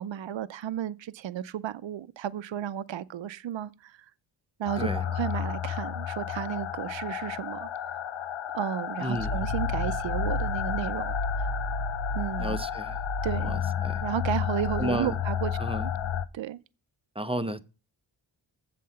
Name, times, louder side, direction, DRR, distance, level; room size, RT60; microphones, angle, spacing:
voice 1, 0.0-3.9 4.6-8.0 8.5-11.5 12.1-12.6 13.2-13.6 14.0-15.9 16.3-16.6, right 10 dB, 70° right, 0.6 m, -33 dB
sound 1, 4.7-16.3, left 6 dB, 75° left, 0.7 m, -31 dB
voice 2, 9.0-9.3 12.4-13.0 13.4-14.0 14.8-15.1 15.6-15.9 17.2-17.6, equal, 10° right, 0.6 m, -32 dB
7.5 x 5.6 x 7.6 m
wide cardioid pair, 85°, 47 cm